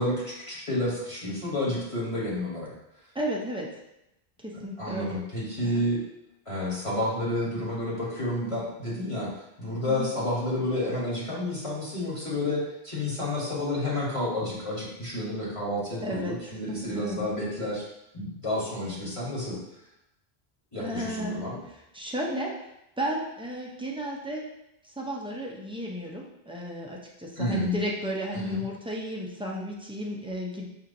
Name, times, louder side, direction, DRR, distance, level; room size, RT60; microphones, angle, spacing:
voice 1, 0.0-2.7 4.8-6.0 6.5-17.8 18.1-19.6 20.7-21.6 27.4-27.8 28.3-28.6, left 1 dB, 30° left, -6 dB, 1.1 m, -30 dB
voice 2, 3.1-3.7 4.4-5.2 5.6-5.8 9.9-10.1 16.0-16.4 16.7-17.2 20.8-21.4 21.9-24.5 24.8-30.7, equal, 10° right, -2 dB, 0.3 m, -33 dB
5.4 x 2.8 x 2.5 m, 0.84 s
omnidirectional pair, 1.1 m